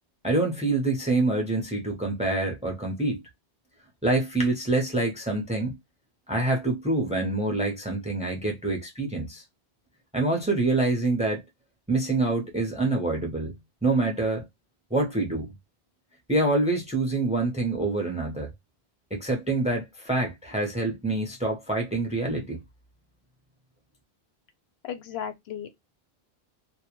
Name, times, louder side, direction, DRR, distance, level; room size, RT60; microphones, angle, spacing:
voice 1, 0.2-3.2 4.0-5.8 6.3-9.4 10.1-11.4 11.9-14.5 14.9-15.5 16.3-18.5 19.1-22.6, right 2 dB, 10° right, 0.4 m, -26 dB
voice 2, 24.8-25.9, left 9 dB, 85° left, 0.8 m, -36 dB
2.2 x 2.0 x 2.8 m
omnidirectional pair, 1.1 m